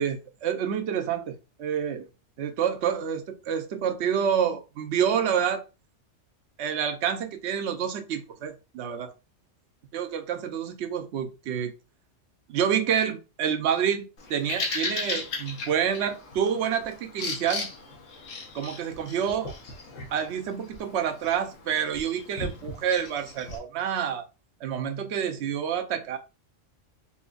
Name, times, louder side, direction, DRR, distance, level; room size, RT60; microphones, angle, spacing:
voice 1, 0.0-2.1 2.4-5.6 6.6-9.1 9.9-11.7 12.5-14.0 14.3-17.7 18.5-19.6 20.1-24.2 24.6-26.2, right 8 dB, 65° right, 0.8 m, -28 dB
Bird vocalization bird call bird song, 14.2-23.6, left 4 dB, 80° left, 1.2 m, -37 dB
4.3 x 2.3 x 2.4 m
omnidirectional pair, 1.3 m